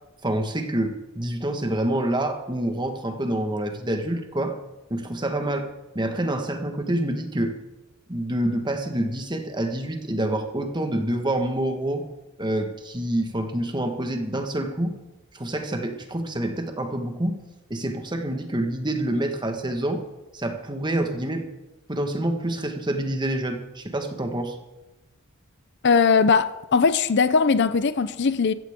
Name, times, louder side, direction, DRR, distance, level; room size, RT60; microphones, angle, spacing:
voice 1, 0.2-4.6 4.9-5.7 5.9-7.5 8.1-12.0 12.4-15.0 15.3-17.4 17.7-20.0 20.3-21.4 21.9-24.6, right 1 dB, 20° right, 1.5 m, -27 dB
voice 2, 25.8-28.5, left 5 dB, 55° left, 0.6 m, -20 dB
15.5 x 14.5 x 3.7 m
head